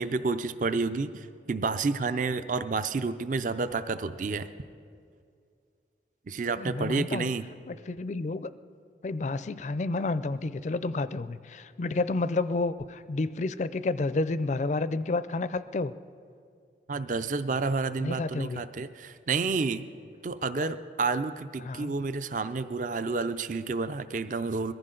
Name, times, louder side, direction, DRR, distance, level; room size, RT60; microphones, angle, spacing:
voice 1, 0.0-4.5 6.3-7.5 16.9-19.8 20.2-24.7, right 4 dB, 45° right, 12 dB, 0.4 m, -30 dB
voice 2, 6.6-7.3 7.7-8.5 9.0-15.9 18.0-18.6 20.6-20.7 21.6-21.9, left 3 dB, 40° left, 15 dB, 0.4 m, -30 dB
22.0 x 14.5 x 3.8 m, 2.3 s
head